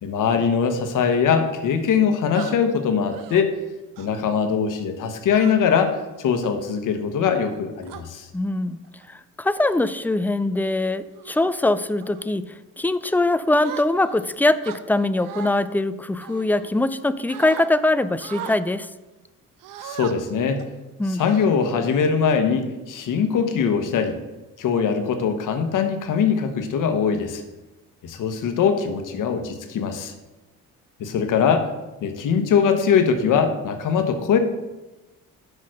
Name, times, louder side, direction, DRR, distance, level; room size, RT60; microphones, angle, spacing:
voice 1, 0.0-3.5 4.0-8.3 19.8-20.6 21.1-24.2 24.6-27.4 28.0-30.1 31.0-31.7 32.0-34.4, left 6 dB, 65° left, 7 dB, 1.2 m, -22 dB
sound 1, 2.3-2.5 3.1-3.4 4.0-4.3 5.4-5.8 6.4-6.7 7.4-8.0 8.8-9.1 9.6-9.9 10.4-10.7 11.2-11.5 12.0-12.3 13.6-14.2 14.6-15.6 16.2-17.0 17.3-17.7 18.2-18.6 19.6-20.1 20.6-20.8 21.2-21.9, right 9 dB, 75° right, 0.7 m, -38 dB
voice 2, 8.3-8.8 9.1-18.9 21.0-21.3, left 2 dB, 5° left, 14 dB, 0.3 m, -22 dB
6.5 x 5.4 x 6.4 m, 1.1 s
cardioid pair, 85°, 33 cm